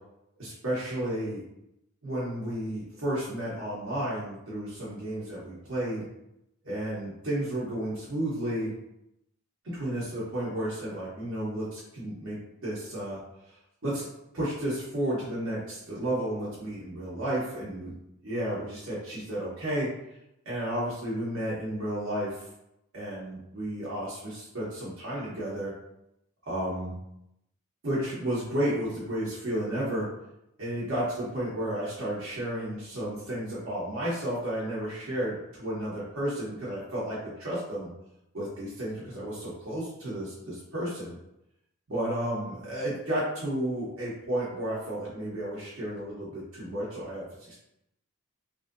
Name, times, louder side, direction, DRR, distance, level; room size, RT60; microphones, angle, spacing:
voice 1, 0.4-1.4 2.0-6.1 6.6-8.7 9.6-13.2 13.8-14.1 14.3-17.9 18.2-19.9 20.5-22.4 22.9-25.7 26.4-26.9 27.8-30.1 30.6-37.9 38.3-41.2 41.9-47.5, right 1 dB, 75° right, -8 dB, 0.9 m, -32 dB
3.0 x 2.6 x 2.5 m, 0.85 s
head